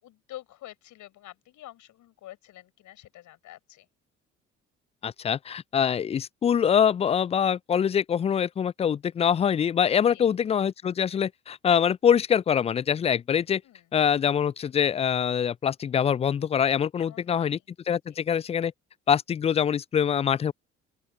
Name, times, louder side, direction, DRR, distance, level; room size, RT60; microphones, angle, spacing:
voice 1, 0.0-3.9 10.1-10.3 13.6-13.9 17.0-17.6 18.1-18.2, left 14 dB, 60° left, 6.8 m, -47 dB
voice 2, 5.0-13.6 13.9-17.6 17.9-18.7 19.1-20.5, left 8 dB, 20° left, 0.3 m, -24 dB
open air
figure-of-eight pair, 50°, 35 cm